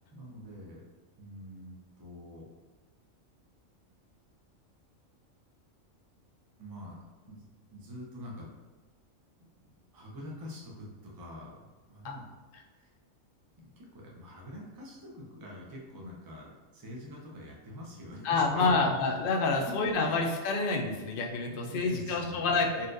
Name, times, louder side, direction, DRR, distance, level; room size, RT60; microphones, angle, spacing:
voice 1, 0.1-0.8 1.2-2.5 6.6-7.0 7.3-7.4 7.7-8.5 9.9-12.2 12.8-12.9 13.6-18.7 21.4-22.5, left 1 dB, 30° right, -3 dB, 0.4 m, -45 dB
voice 2, 18.2-22.9, left 3 dB, 60° left, 0 dB, 0.6 m, -28 dB
4.1 x 2.4 x 2.5 m, 1.3 s
omnidirectional pair, 1.4 m